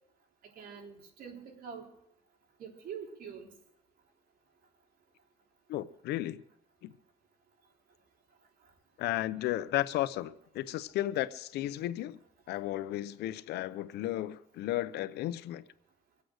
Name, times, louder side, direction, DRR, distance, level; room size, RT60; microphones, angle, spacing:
voice 1, 0.6-1.9 2.6-3.5, right 7 dB, 60° right, 4.0 m, -45 dB
voice 2, 5.7-6.4 6.8-6.9 9.0-12.2 12.5-15.7, left 14 dB, 75° left, 0.7 m, -34 dB
24.5 x 8.5 x 6.5 m
cardioid pair, 110°, 17 cm